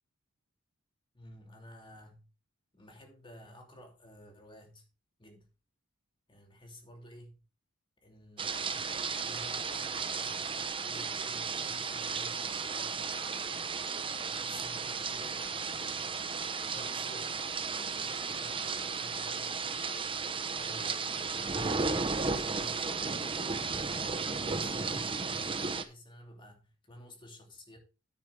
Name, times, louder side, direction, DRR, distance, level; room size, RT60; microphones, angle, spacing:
voice 1, 1.1-2.2 2.7-4.8 5.2-5.5 6.3-7.4 8.0-10.5 10.8-13.7 14.3-16.2 16.7-20.0 20.5-23.6 24.1-27.8, equal, 25° left, 2.7 m, -53 dB
sound 1, 8.4-25.8, right 5 dB, 25° right, 0.8 m, -34 dB
10.5 x 9.0 x 3.4 m
head